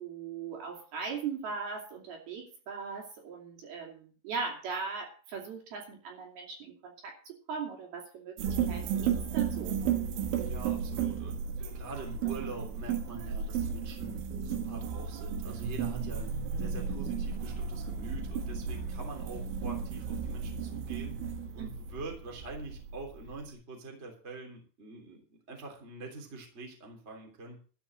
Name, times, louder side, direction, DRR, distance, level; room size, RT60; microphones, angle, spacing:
voice 1, 0.0-9.8 21.6-21.7, right 5 dB, 55° right, 0 dB, 4.2 m, -39 dB
sound 1, 8.4-23.5, right 7 dB, 75° right, 3.9 m, -34 dB
voice 2, 10.3-11.3 11.7-21.2 21.5-25.2 25.5-27.6, right 2 dB, 20° right, 1 dB, 2.4 m, -45 dB
13.5 x 5.8 x 8.7 m, 0.40 s
omnidirectional pair, 5.7 m